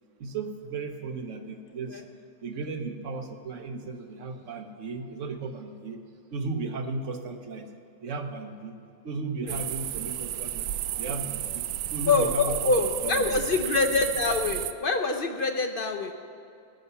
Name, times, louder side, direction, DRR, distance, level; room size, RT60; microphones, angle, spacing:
voice 1, 0.2-2.0 2.4-6.0 6.3-7.7 8.0-8.8 9.0-10.7 11.0-12.7 13.0-13.4, right 3 dB, 50° right, 6 dB, 1.2 m, -35 dB
sound 1, 9.5-14.7, right 12 dB, 85° right, 1.2 m, -32 dB
voice 2, 12.1-16.1, left 3 dB, 60° left, 6 dB, 0.5 m, -25 dB
16.5 x 6.6 x 8.2 m, 2.4 s
omnidirectional pair, 1.8 m